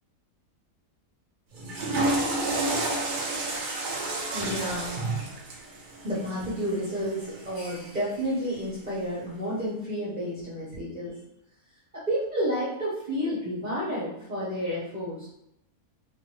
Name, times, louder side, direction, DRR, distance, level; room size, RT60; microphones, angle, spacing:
Water / Toilet flush, 1.5-7.8, right 2 dB, 55° right, 0.5 m, -30 dB
voice 1, 4.3-5.0 6.0-11.1 11.9-15.4, equal, 30° right, -9 dB, 1.0 m, -31 dB
3.4 x 2.9 x 3.2 m, 0.80 s
omnidirectional pair, 1.6 m